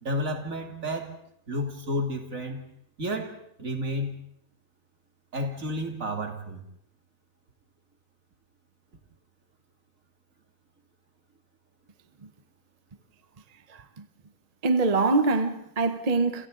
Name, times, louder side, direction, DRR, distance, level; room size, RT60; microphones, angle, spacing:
voice 1, 0.0-1.1 1.5-2.6 3.0-4.2 5.3-6.6, equal, 65° right, 3.1 m, -31 dB
voice 2, 13.7-14.0 14.6-16.5, right 3 dB, 30° right, 0.9 m, -24 dB
29.0 x 27.0 x 3.9 m
omnidirectional pair, 1.5 m